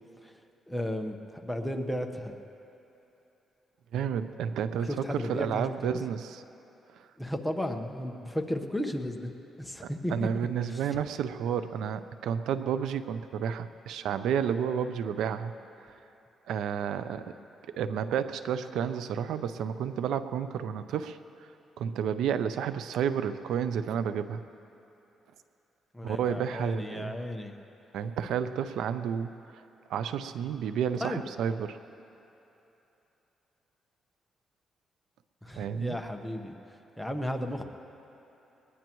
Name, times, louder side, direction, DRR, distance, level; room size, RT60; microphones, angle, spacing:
voice 1, 0.7-2.4 4.9-6.0 7.2-9.3 9.6-10.3 10.7-10.8 25.9-27.5 31.0-31.2 35.4-36.5 37.0-37.6, left 1 dB, 5° left, 4 dB, 1.1 m, -34 dB
voice 2, 3.9-6.4 7.0-7.1 9.8-15.5 15.8-15.9 16.5-17.3 17.8-21.2 21.8-24.4 26.0-27.1 27.9-29.3 29.9-31.8 35.5-36.0, right 8 dB, 85° right, 11 dB, 0.5 m, -31 dB
21.5 x 19.5 x 3.1 m, 2.9 s
cardioid pair, 105°, 0 cm